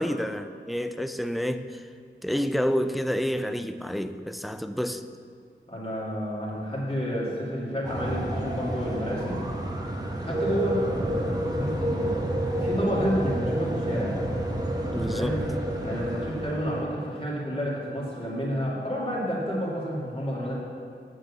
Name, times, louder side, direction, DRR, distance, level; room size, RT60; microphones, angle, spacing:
voice 1, 0.0-1.9 2.2-5.0 14.9-15.4, equal, ahead, 0.4 m, -29 dB
voice 2, 5.7-9.4 10.2-11.2 11.4-12.2 12.5-14.2 15.1-15.4 15.8-20.6, equal, 30° left, 2.6 m, -30 dB
sound 1, 7.8-16.8, right 1 dB, 20° right, 1.3 m, -29 dB
7.6 x 6.5 x 7.2 m
wide cardioid pair, 65°, 20 cm